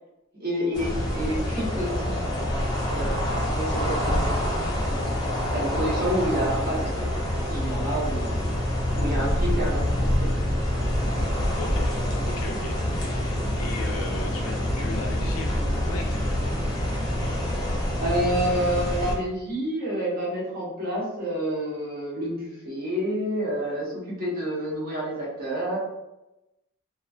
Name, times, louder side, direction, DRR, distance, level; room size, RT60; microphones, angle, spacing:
voice 1, 0.4-2.2 2.9-4.3 5.5-7.1 7.3-8.5 8.9-10.3 18.0-25.8, equal, 45° right, -6 dB, 0.9 m, -29 dB
sound 1, 0.7-19.1, left 1 dB, 20° left, 0.5 m, -26 dB
voice 2, 11.6-12.0 12.3-16.5, left 2 dB, 75° left, 2 dB, 0.5 m, -38 dB
2.3 x 2.2 x 2.4 m, 0.97 s
head